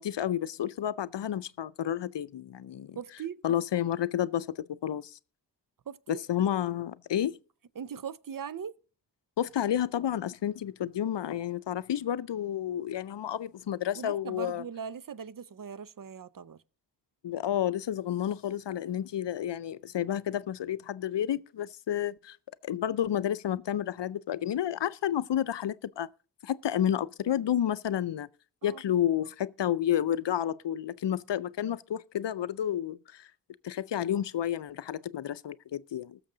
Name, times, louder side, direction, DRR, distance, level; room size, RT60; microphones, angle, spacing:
voice 1, 0.0-3.0 3.4-5.1 6.1-7.4 9.4-14.6 17.2-22.4 22.6-26.1 26.4-28.3 28.6-33.3 33.6-36.2, left 10 dB, 90° left, 0.5 m, -30 dB
voice 2, 3.0-3.4 5.9-6.2 7.8-8.8 13.9-16.6 28.6-28.9, right 7 dB, 50° right, 0.6 m, -40 dB
20.0 x 6.9 x 3.8 m
wide cardioid pair, 90°, 41 cm